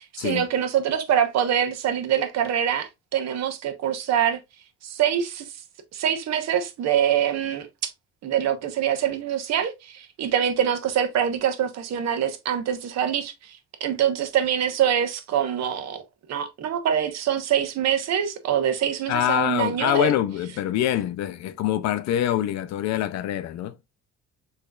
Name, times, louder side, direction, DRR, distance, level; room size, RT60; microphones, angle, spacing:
voice 1, 0.0-4.4 4.8-5.5 5.9-7.9 8.2-16.0 16.3-20.1, right 9 dB, 60° right, 1.2 m, -24 dB
voice 2, 19.1-23.7, left 12 dB, 65° left, 0.6 m, -25 dB
6.4 x 3.2 x 2.4 m
cardioid pair, 115°, 30 cm